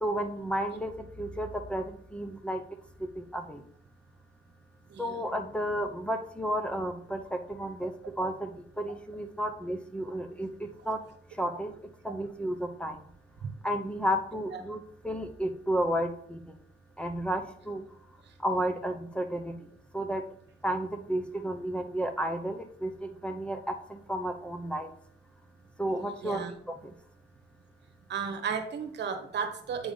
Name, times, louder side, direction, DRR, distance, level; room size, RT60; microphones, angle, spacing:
voice 1, 0.0-2.6 3.0-3.6 5.0-8.5 8.8-11.0 11.4-11.7 12.0-13.0 13.6-16.4 17.0-17.8 18.4-19.6 19.9-20.2 20.6-24.9 25.8-26.4, equal, 5° left, 5 dB, 0.8 m, -32 dB
voice 2, 4.9-5.2 10.8-10.9 14.5-14.6 18.2-18.3 26.2-26.5 28.1-29.9, right 6 dB, 60° right, 7 dB, 1.2 m, -34 dB
8.6 x 3.6 x 5.2 m, 0.62 s
cardioid pair, 90°, 20 cm